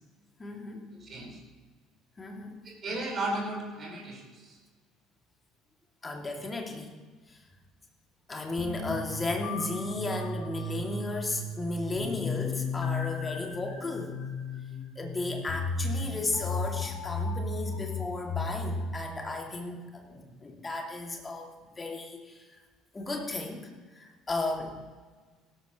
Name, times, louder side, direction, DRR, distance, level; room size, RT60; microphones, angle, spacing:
voice 1, 0.4-0.8 2.2-2.5 6.0-6.9 7.3-7.4 8.3-14.2 15.0-22.4 22.9-23.7 24.0-24.8, left 2 dB, 20° left, 2 dB, 2.4 m, -34 dB
voice 2, 1.0-1.4 2.6-4.6, right 2 dB, 35° right, 0 dB, 4.6 m, -35 dB
sound 1, 8.6-18.9, left 3 dB, 50° left, 1.9 m, -34 dB
17.0 x 13.0 x 3.0 m, 1.4 s
figure-of-eight pair, 60°, 0 cm